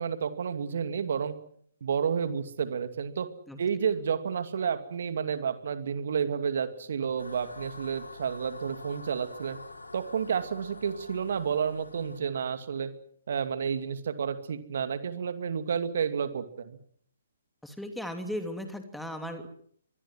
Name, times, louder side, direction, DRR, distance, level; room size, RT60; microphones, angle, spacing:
voice 1, 0.0-1.3 1.8-3.3 3.6-9.6 9.9-12.9 13.3-16.8, right 7 dB, 60° right, 10 dB, 2.5 m, -30 dB
sound 1, 7.2-12.2, left 2 dB, 85° left, 5.1 m, -46 dB
voice 2, 17.6-19.5, equal, ahead, 6 dB, 3.0 m, -36 dB
25.0 x 21.0 x 7.6 m, 0.63 s
figure-of-eight pair, 135°, 0 cm